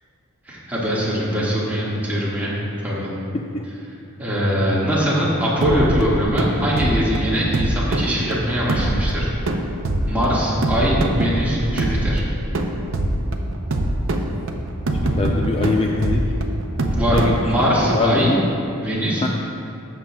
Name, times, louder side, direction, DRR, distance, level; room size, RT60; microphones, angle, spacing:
voice 1, 0.5-2.5 2.8-3.1 4.2-9.3 10.1-12.2 16.9-18.3 18.8-19.3, equal, 10° right, -8 dB, 1.8 m, -21 dB
sound 1, 5.6-17.9, right 1 dB, 60° right, 0.6 m, -23 dB
voice 2, 15.2-16.2 17.1-17.4 17.9-18.4 19.2-19.3, left 3 dB, 25° left, 0 dB, 0.4 m, -21 dB
13.0 x 7.4 x 2.3 m, 2.7 s
head